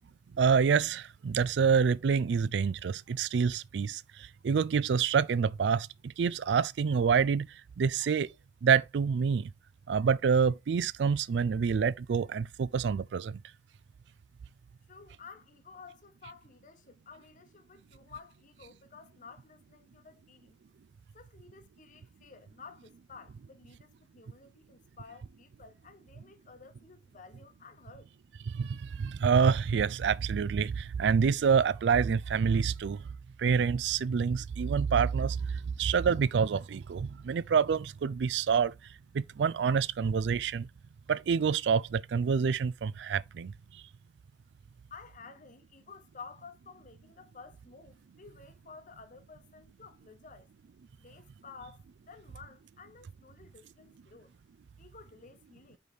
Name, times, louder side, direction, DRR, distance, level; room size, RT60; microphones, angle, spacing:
voice 1, 0.4-7.5 7.8-8.3 8.6-9.5 9.9-13.4 28.5-33.1 33.4-38.7 39.1-40.7 41.1-43.5, right 6 dB, 75° right, 0.4 m, -27 dB
voice 2, 14.9-20.6 21.1-28.1 44.9-50.5 51.0-54.3 54.8-55.8, left 5 dB, 45° left, 0.8 m, -52 dB
5.2 x 4.7 x 4.0 m
head